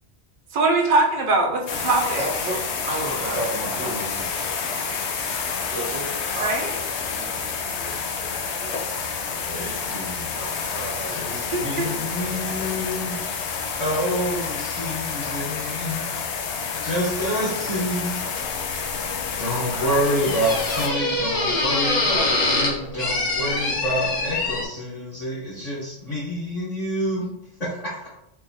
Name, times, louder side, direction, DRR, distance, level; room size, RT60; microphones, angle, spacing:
voice 1, 0.5-2.3 6.4-6.7 11.5-11.9 19.5-20.0, right 3 dB, 55° right, 0 dB, 0.8 m, -22 dB
sound 1, 1.7-20.9, left 5 dB, 85° left, 0.9 m, -29 dB
voice 2, 2.2-4.0 4.7-5.0 5.7-9.5 10.3-13.4 13.9-14.1 17.4-17.7, right 2 dB, 75° right, -7 dB, 1.1 m, -36 dB
voice 3, 3.4-4.2 9.4-10.4 11.1-13.1 13.8-16.0 16.8-18.2 19.4-27.3, equal, 40° left, -7 dB, 1.0 m, -28 dB
sound 2, 18.4-24.7, left 2 dB, 55° left, 1.1 m, -25 dB
4.5 x 2.6 x 2.6 m, 0.82 s
omnidirectional pair, 1.1 m